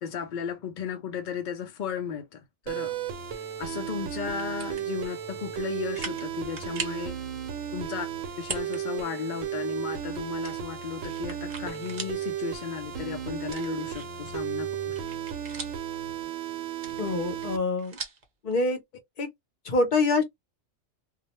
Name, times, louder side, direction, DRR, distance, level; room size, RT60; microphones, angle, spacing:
voice 1, 0.0-2.9 3.6-7.2 7.7-8.1 8.4-14.9, left 7 dB, 65° left, 0.4 m, -35 dB
sound 1, 2.7-17.6, right 9 dB, 80° right, 1.0 m, -34 dB
sound 2, 4.4-4.8 5.4-5.5 5.9-6.3 6.6-7.0 8.4-8.8 9.2-9.3 10.4-12.2 12.6-12.7 13.4-14.3 14.7-15.9 16.7-18.3, right 4 dB, 45° right, 0.6 m, -39 dB
voice 2, 17.0-18.0 18.4-18.8 19.2-19.3 19.6-20.2, left 3 dB, 45° left, 0.8 m, -25 dB
2.3 x 2.1 x 2.9 m
omnidirectional pair, 1.3 m